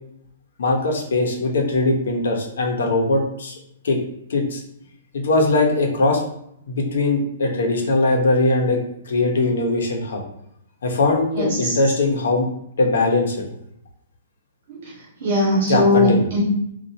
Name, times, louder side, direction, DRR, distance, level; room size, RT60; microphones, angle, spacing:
voice 1, 0.6-3.5 3.8-4.0 4.3-4.6 5.1-6.2 6.7-8.8 9.1-10.2 10.8-12.5 12.8-13.5 15.7-16.3, left 2 dB, 80° left, 2 dB, 0.9 m, -20 dB
voice 2, 11.4-11.7 14.7-14.8 15.2-16.4, left 1 dB, 50° right, -4 dB, 1.3 m, -19 dB
4.1 x 2.5 x 2.8 m, 0.75 s
hypercardioid pair, 170°, 0 cm